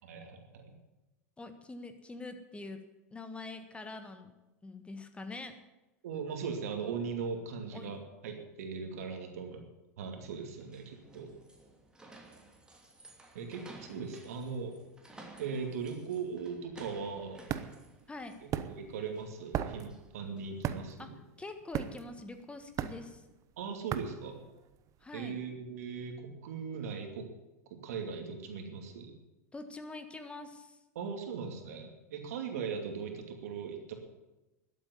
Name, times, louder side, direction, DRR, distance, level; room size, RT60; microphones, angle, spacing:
voice 1, 0.0-0.7 6.0-9.6 10.0-11.3 13.3-14.7 15.4-17.4 18.4-21.2 23.6-24.4 25.1-27.3 27.7-29.2 30.9-33.9, right 5 dB, 70° right, 4 dB, 2.6 m, -39 dB
voice 2, 1.4-2.8 3.1-4.3 4.6-5.6 7.7-8.0 18.1-18.4 21.0-21.1 21.4-23.2 25.0-25.3 29.5-30.8, left 3 dB, 15° left, 8 dB, 1.5 m, -44 dB
sound 1, 10.2-20.6, right 2 dB, 10° right, 2.8 m, -55 dB
sound 2, 16.9-25.0, right 10 dB, 40° right, 0.9 m, -38 dB
12.5 x 8.5 x 9.5 m, 1.0 s
hypercardioid pair, 95°, 8 cm